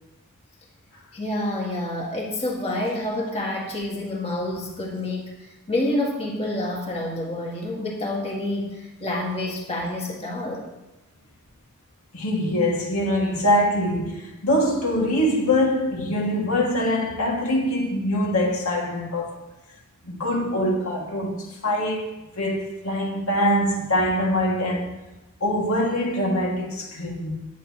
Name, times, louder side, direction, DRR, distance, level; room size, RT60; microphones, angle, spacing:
voice 1, 1.1-5.3 5.7-10.7, left 1 dB, 30° left, 2.1 m, -28 dB
voice 2, 12.1-19.3 20.0-24.9 25.4-27.4, left 1 dB, 75° left, 2.5 m, -23 dB
19.5 x 8.4 x 3.2 m
head